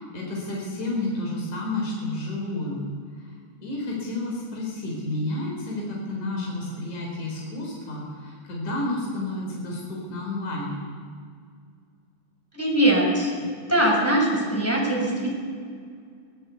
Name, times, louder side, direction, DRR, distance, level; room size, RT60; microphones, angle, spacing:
voice 1, 0.0-2.8 3.5-10.8, left 2 dB, 80° left, -2 dB, 5.8 m, -30 dB
voice 2, 12.5-13.3 13.7-15.3, right 1 dB, 5° left, -2 dB, 6.2 m, -21 dB
23.5 x 18.0 x 8.5 m, 2.1 s
omnidirectional pair, 3.4 m